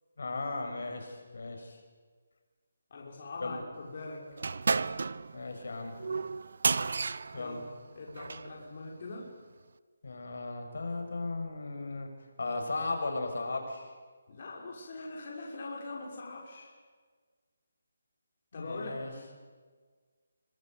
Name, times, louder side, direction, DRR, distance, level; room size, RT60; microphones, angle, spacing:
voice 1, 0.2-1.8 3.4-3.6 5.3-5.9 7.3-7.6 10.0-12.1 12.4-14.0 18.5-19.1, left 3 dB, 70° left, 4 dB, 7.1 m, -36 dB
voice 2, 2.9-4.2 7.4-7.7 8.0-9.3 14.3-16.7 18.5-19.3, left 2 dB, 40° left, -2 dB, 6.2 m, -42 dB
sound 1, 4.4-8.5, right 4 dB, 65° right, 1.1 m, -32 dB
27.5 x 26.0 x 8.3 m, 1.5 s
hypercardioid pair, 170°, 0 cm